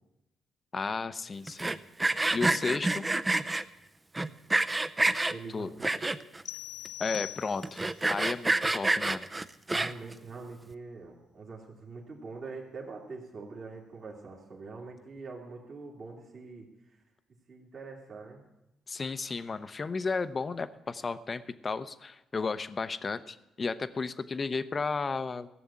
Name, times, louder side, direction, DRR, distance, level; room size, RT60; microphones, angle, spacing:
voice 1, 0.7-1.8 2.3-3.1 5.5-5.7 7.0-7.8 8.1-9.3 18.9-25.5, left 4 dB, 35° left, 13 dB, 0.7 m, -33 dB
Sawing, 1.5-3.6 4.1-5.3 5.8-6.4 6.8-6.9 7.1-7.2 7.6-10.1, right 2 dB, 15° right, 0.5 m, -28 dB
voice 2, 5.3-6.1 9.7-17.0 17.5-18.5, right 4 dB, 50° right, -3 dB, 2.5 m, -44 dB
sound 1, 6.4-8.0, left 14 dB, 75° left, 0.4 m, -41 dB
15.5 x 7.0 x 8.6 m, 0.93 s
cardioid pair, 90°, 0 cm